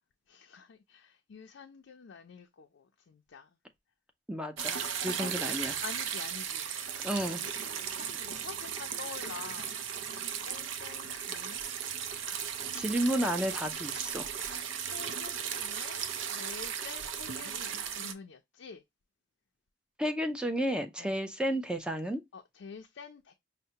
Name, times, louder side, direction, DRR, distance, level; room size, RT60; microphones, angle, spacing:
voice 1, 0.3-3.5 4.7-4.9 5.2-5.4 5.8-6.7 7.6-9.7 10.1-11.7 12.9-13.6 14.7-18.8 21.0-21.2 22.3-23.3, left 5 dB, 70° left, 0.4 m, -48 dB
voice 2, 4.3-5.8 7.0-7.4 12.7-14.3 20.0-22.2, equal, 5° right, 0.5 m, -32 dB
sound 1, 4.6-18.1, right 8 dB, 90° right, 0.5 m, -36 dB
5.4 x 2.1 x 2.8 m
head